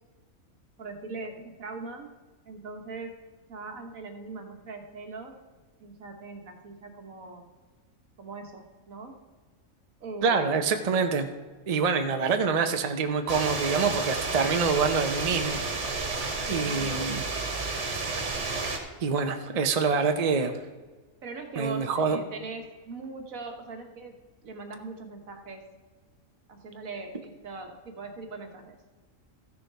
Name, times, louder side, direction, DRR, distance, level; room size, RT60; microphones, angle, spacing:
voice 1, 0.8-2.1 2.4-3.1 3.5-5.4 5.8-7.5 8.2-9.2 10.0-10.6 12.1-12.3 16.4-16.9 21.2-24.2 24.4-25.6 26.5-28.8, right 3 dB, 75° right, 4 dB, 1.6 m, -40 dB
voice 2, 10.2-11.3 11.7-15.6 16.5-17.2 19.0-20.6 21.6-22.2, right 5 dB, 35° right, 6 dB, 0.7 m, -26 dB
sound 1, 13.3-18.8, right 3 dB, 60° right, 1.7 m, -31 dB
14.0 x 6.6 x 4.6 m, 1.3 s
omnidirectional pair, 1.4 m